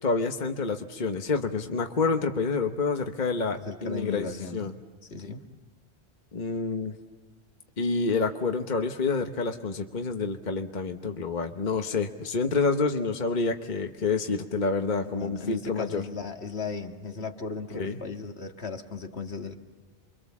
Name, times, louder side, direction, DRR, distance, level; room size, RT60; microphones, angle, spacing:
voice 1, 0.0-4.7 6.3-6.9 7.8-16.0 17.7-18.0, left 4 dB, 45° left, 5 dB, 1.2 m, -28 dB
voice 2, 3.6-4.7 5.1-5.4 15.0-19.6, left 4 dB, 70° left, 4 dB, 2.0 m, -36 dB
28.5 x 24.5 x 7.2 m, 1.4 s
omnidirectional pair, 1.1 m